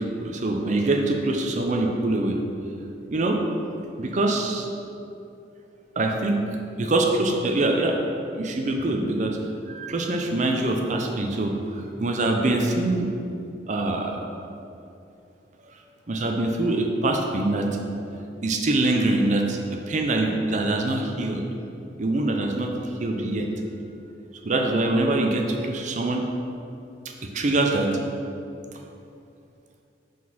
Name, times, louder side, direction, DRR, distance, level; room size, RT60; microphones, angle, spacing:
voice 1, 0.0-2.4 3.1-3.4 4.0-4.6 6.0-6.4 6.8-8.0 8.3-9.4 9.7-13.1 13.7-14.2 16.1-17.7 18.4-21.4 22.0-22.7 23.0-23.5 24.4-26.3 27.2-27.9, right 2 dB, 40° right, 3 dB, 0.5 m, -24 dB
5.1 x 4.0 x 5.4 m, 2.6 s
head